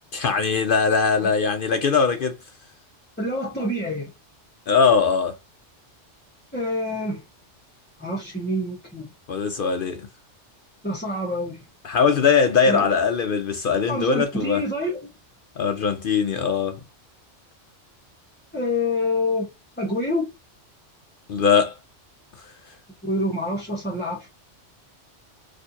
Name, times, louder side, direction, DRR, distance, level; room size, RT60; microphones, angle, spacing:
voice 1, 0.1-2.4 4.7-5.4 9.3-10.1 11.8-14.6 15.6-16.8 21.3-21.8, left 5 dB, 60° left, 0.6 m, -21 dB
voice 2, 3.2-4.1 6.5-7.2 8.0-9.1 10.8-11.6 12.7-12.9 13.9-15.1 18.5-19.5 19.8-20.3 23.0-24.3, left 1 dB, 10° left, 1.0 m, -27 dB
4.3 x 2.5 x 2.6 m
omnidirectional pair, 1.2 m